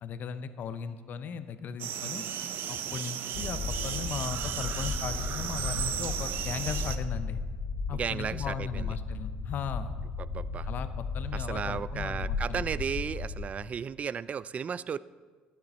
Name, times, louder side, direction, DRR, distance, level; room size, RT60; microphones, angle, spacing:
voice 1, 0.0-2.2 2.7-7.4 7.9-9.9 10.7-12.8, left 7 dB, 55° left, 12 dB, 0.7 m, -37 dB
sound 1, 1.8-7.0, right 9 dB, 65° right, 0.7 m, -35 dB
sound 2, 3.3-13.5, left 4 dB, 85° left, 1.4 m, -35 dB
voice 2, 7.9-8.9 10.2-10.7 11.3-15.0, right 7 dB, 40° right, 18 dB, 0.3 m, -34 dB
12.0 x 9.6 x 4.3 m, 1.5 s
supercardioid pair, 85°, 4 cm